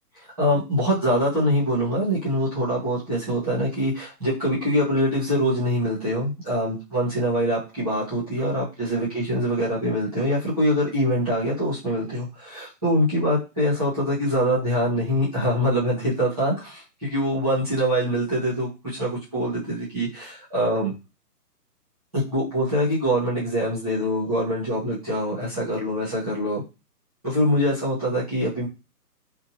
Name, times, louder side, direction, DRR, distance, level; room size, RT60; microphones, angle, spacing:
voice 1, 0.4-20.9 22.1-26.6 27.2-28.7, equal, 5° left, -10 dB, 1.1 m, -24 dB
3.8 x 2.4 x 2.7 m, 0.27 s
hypercardioid pair, 175°, 48 cm